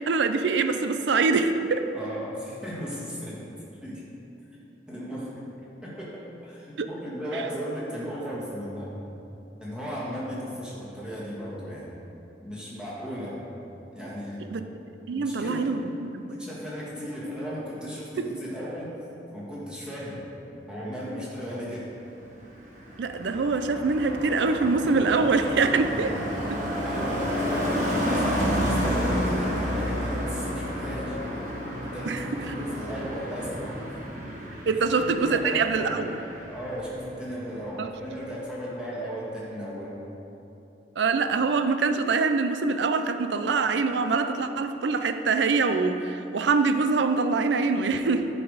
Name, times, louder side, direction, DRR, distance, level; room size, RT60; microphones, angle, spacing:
voice 1, 0.0-1.8 6.8-6.9 7.3-7.4 14.5-14.6 15.1-16.3 18.2-18.3 23.0-26.2 32.1-32.2 34.7-36.2 37.8-37.9 41.0-48.3, right 4 dB, 80° right, 8 dB, 0.5 m, -24 dB
voice 2, 1.9-4.0 4.9-5.5 5.8-9.0 9.6-11.9 12.4-13.4 13.9-14.4 15.1-15.7 16.3-18.9 19.3-20.2 20.7-21.9 26.8-31.2 31.9-33.9 34.2-34.3 34.8-36.1 36.5-40.0, equal, 5° right, -7 dB, 1.8 m, -36 dB
Car passing by, 22.2-37.0 37.3-37.6, equal, 45° right, 1.4 m, -30 dB
10.5 x 5.1 x 4.9 m, 2.9 s
head